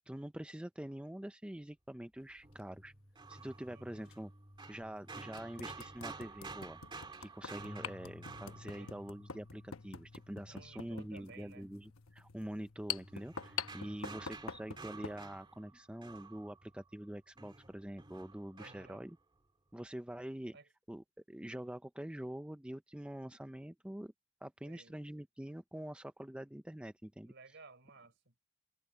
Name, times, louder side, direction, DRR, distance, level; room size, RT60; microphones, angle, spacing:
voice 1, 0.0-2.9 3.3-4.3 4.7-6.8 7.2-19.2 19.7-20.6 20.9-24.1 24.4-27.3, right 1 dB, 5° right, 0.4 m, -45 dB
sound 1, 2.4-2.6 4.1-4.2 4.7-4.8 5.4-15.2, left 7 dB, 90° left, 1.0 m, -45 dB
sound 2, 2.4-9.6 12.9-17.1 17.4-19.1, right 3 dB, 25° right, 2.2 m, -51 dB
voice 2, 3.7-4.1 8.6-9.0 10.5-11.7 13.8-14.3 18.5-19.0 20.5-20.7 24.6-25.0 27.2-28.3, right 3 dB, 60° right, 4.0 m, -58 dB
sound 3, 7.6-13.8, left 3 dB, 35° left, 0.7 m, -57 dB
head